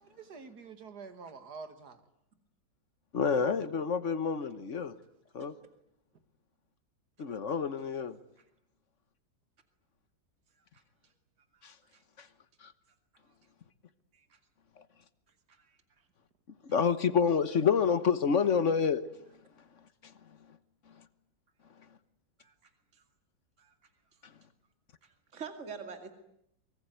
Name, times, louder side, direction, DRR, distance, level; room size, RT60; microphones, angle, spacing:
voice 1, 0.0-2.0, right 5 dB, 60° right, 9 dB, 2.5 m, -47 dB
voice 2, 3.1-4.9 5.3-5.5 7.2-8.2 11.6-11.7 12.2-12.3 12.6-12.7 16.6-19.1, left 6 dB, 45° left, 13 dB, 1.4 m, -28 dB
voice 3, 11.5-12.0 13.1-13.3 14.1-14.4 15.5-15.8 22.4-23.0 23.6-23.7 25.0-26.1, right 6 dB, 40° right, 6 dB, 2.7 m, -48 dB
24.0 x 23.0 x 9.5 m, 0.76 s
omnidirectional pair, 2.0 m